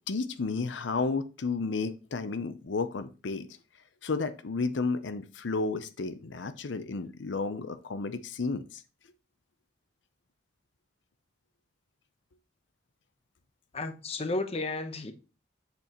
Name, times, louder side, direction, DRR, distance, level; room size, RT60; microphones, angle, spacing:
voice 1, 0.1-3.5 4.0-8.8, left 4 dB, 80° left, 0.7 m, -32 dB
voice 2, 13.7-15.1, left 2 dB, 35° left, 0.9 m, -33 dB
8.0 x 6.9 x 3.0 m
head